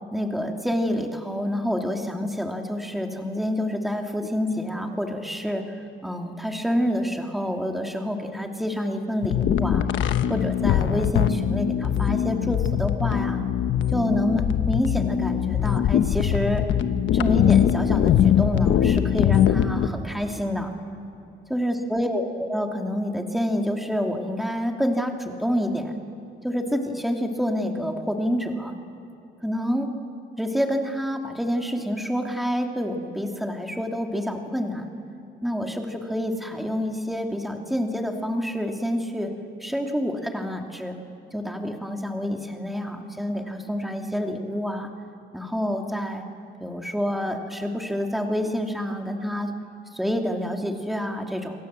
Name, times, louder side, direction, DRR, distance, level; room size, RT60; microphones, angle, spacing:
voice 1, 0.1-5.8 6.0-9.9 10.3-13.4 13.9-16.7 17.1-20.7 21.5-26.0 26.4-28.7 29.4-29.9 30.4-34.9 35.4-39.3 39.6-41.0 41.3-44.9 45.3-46.2 46.6-49.5 49.9-51.5, equal, ahead, 3 dB, 2.7 m, -27 dB
sound 1, 9.2-19.9, left 10 dB, 75° left, 1.1 m, -22 dB
28.0 x 24.0 x 7.6 m, 2.7 s
cardioid pair, 90°, 20 cm